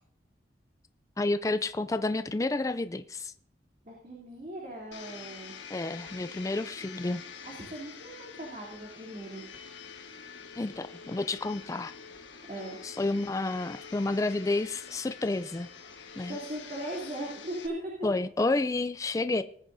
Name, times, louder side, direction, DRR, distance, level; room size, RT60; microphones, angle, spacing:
voice 1, 1.2-3.3 5.7-7.2 10.6-11.9 12.8-15.7 16.2-16.4 18.0-19.4, left 2 dB, 20° left, 0.3 m, -30 dB
voice 2, 3.8-5.5 7.4-9.4 12.5-12.8 16.2-17.9, right 1 dB, 45° right, 3.1 m, -39 dB
Domestic sounds home sounds, 4.9-17.7, left 6 dB, 85° left, 1.5 m, -46 dB
19.5 x 9.7 x 2.7 m
head